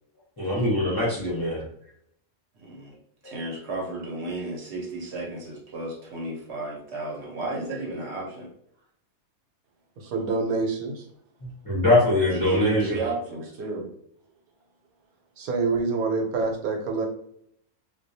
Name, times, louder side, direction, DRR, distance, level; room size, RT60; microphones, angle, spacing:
voice 1, 0.4-1.6 3.2-3.4 11.6-13.0, left 1 dB, 30° left, -7 dB, 0.4 m, -22 dB
voice 2, 2.6-2.9 3.2-8.5 12.3-13.9, right 2 dB, 60° right, -1 dB, 0.8 m, -33 dB
voice 3, 10.0-11.0 15.4-17.1, right 4 dB, 85° right, 2 dB, 1.1 m, -26 dB
2.3 x 2.2 x 2.6 m, 0.70 s
omnidirectional pair, 1.5 m